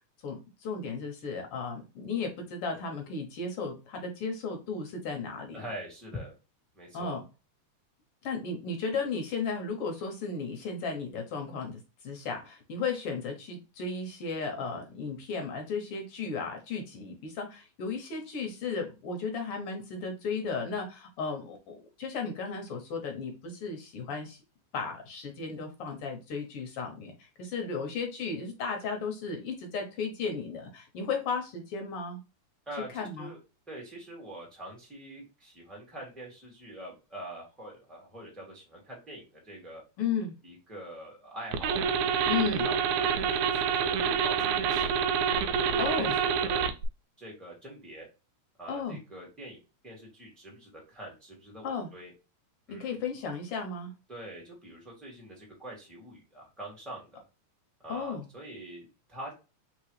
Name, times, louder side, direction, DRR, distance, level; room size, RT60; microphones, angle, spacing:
voice 1, 0.2-5.6 6.9-7.2 8.2-24.4 24.7-32.2 32.9-33.3 40.0-40.3 42.3-42.7 45.8-46.1 48.7-49.0 51.6-51.9 52.7-53.9 57.9-58.2, left 4 dB, 65° left, 3 dB, 1.5 m, -35 dB
voice 2, 5.5-6.3 6.7-7.2 32.6-32.9 33.2-33.4 33.7-39.8 40.4-42.3 42.6-45.1 45.5-46.7 47.2-48.1 48.6-52.1 52.7-53.0 54.1-57.3 57.8-59.3, right 1 dB, ahead, -2 dB, 1.5 m, -44 dB
sound 1, 41.5-46.9, right 7 dB, 80° right, 1.9 m, -27 dB
4.0 x 3.7 x 3.2 m, 0.29 s
omnidirectional pair, 3.4 m